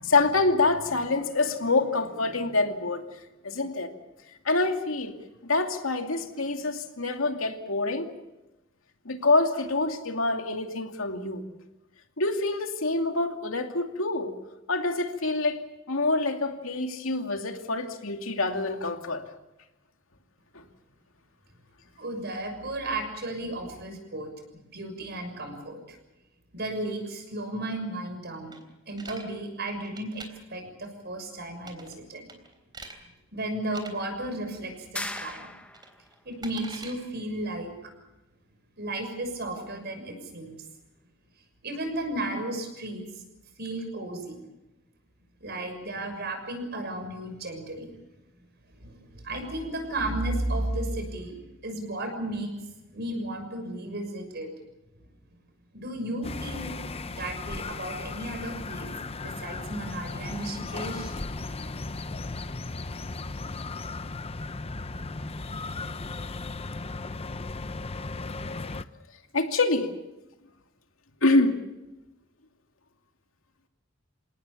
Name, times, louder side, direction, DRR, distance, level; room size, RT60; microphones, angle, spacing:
voice 1, 0.0-3.0 3.4-3.9 4.4-5.2 5.4-8.1 9.0-11.5 12.2-14.3 14.7-19.2 69.3-69.9 71.2-71.5, left 3 dB, 90° left, 5 dB, 2.5 m, -26 dB
voice 2, 22.0-26.0 26.5-28.5 28.9-30.2 30.5-32.3 33.3-35.5 36.2-37.7 38.8-40.5 41.6-43.2 43.6-44.4 45.4-47.9 48.8-51.3 51.6-52.5 52.9-54.5 55.7-56.7 57.1-58.9 59.2-61.1, right 1 dB, 55° right, 6 dB, 6.5 m, -34 dB
sound 1, 28.5-29.3 29.8-30.3 31.6-32.0 32.3-33.0 33.6-33.9 35.1-35.4 35.7-36.9, right 3 dB, 20° right, 3.6 m, -44 dB
sound 2, 35.0-36.0, left 1 dB, 5° left, 1.3 m, -37 dB
sound 3, 56.2-68.8, left 3 dB, 30° left, 0.7 m, -36 dB
27.5 x 18.5 x 7.2 m, 1.0 s
head